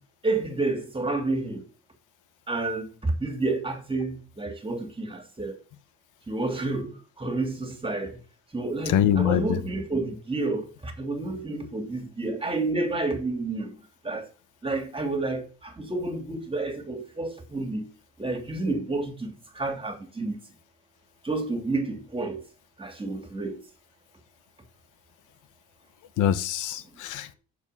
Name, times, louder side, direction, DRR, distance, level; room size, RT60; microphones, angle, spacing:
voice 1, 0.2-1.6 2.5-2.8 3.2-5.5 6.3-6.9 7.2-8.1 8.5-10.6 11.0-13.7 14.0-14.2 14.6-15.4 15.8-17.8 18.2-20.4 21.2-22.4 22.8-23.5, right 2 dB, 20° right, 3.1 m, -29 dB
voice 2, 8.9-9.6 26.2-27.3, left 10 dB, 90° left, 1.0 m, -24 dB
7.3 x 6.9 x 7.1 m
cardioid pair, 90°, 30 cm